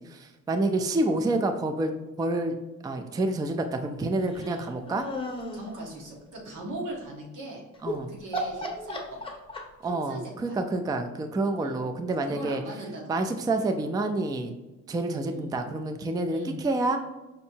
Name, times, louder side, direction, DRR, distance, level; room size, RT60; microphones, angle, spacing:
voice 1, 0.0-2.5 2.8-5.1 7.8-8.1 9.8-12.6 13.1-14.5 14.9-17.0, right 2 dB, 15° right, 6 dB, 0.3 m, -28 dB
sound 1, 4.3-5.7 7.7-8.0 8.3-9.9, equal, 20° left, 0.8 m, -34 dB
voice 2, 5.5-7.6 8.1-9.2 9.9-10.2 10.4-10.6 11.6-11.8 12.3-13.5 15.2-15.4 16.2-16.6, right 1 dB, 85° right, -2 dB, 1.4 m, -39 dB
5.5 x 2.6 x 2.7 m, 1.1 s
cardioid pair, 90°, 30 cm